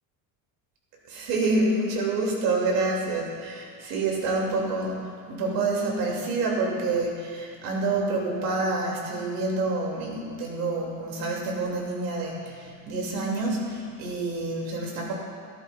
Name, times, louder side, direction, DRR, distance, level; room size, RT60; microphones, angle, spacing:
voice 1, 1.1-5.0 5.3-15.1, right 3 dB, 70° right, -2 dB, 2.7 m, -27 dB
15.5 x 12.5 x 2.4 m, 2.1 s
cardioid pair, 175°, 35 cm